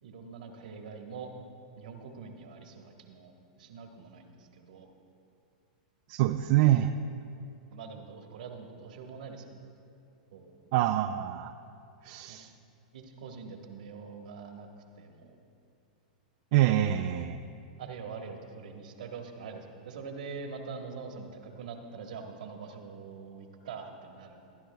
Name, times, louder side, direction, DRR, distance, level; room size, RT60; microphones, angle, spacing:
voice 1, 0.0-1.3 1.7-4.9 7.7-9.6 10.3-10.6 12.3-12.4 12.9-14.7 15.0-15.4 17.8-24.6, right 5 dB, 75° right, 3 dB, 1.4 m, -44 dB
voice 2, 6.1-6.9 10.7-11.5 12.0-12.5 16.5-17.4, right 13 dB, 55° right, 5 dB, 0.4 m, -25 dB
21.5 x 11.0 x 2.3 m, 2.6 s
hypercardioid pair, 115°, 4 cm